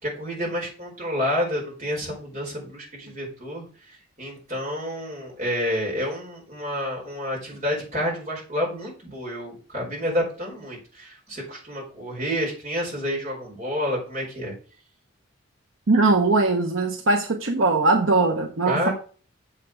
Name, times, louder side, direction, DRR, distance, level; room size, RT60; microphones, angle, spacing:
voice 1, 0.0-14.5 18.6-18.9, equal, 35° right, 4.6 m, -29 dB
voice 2, 15.9-18.9, right 3 dB, 65° right, 0.9 m, -20 dB
7.3 x 6.6 x 4.8 m
head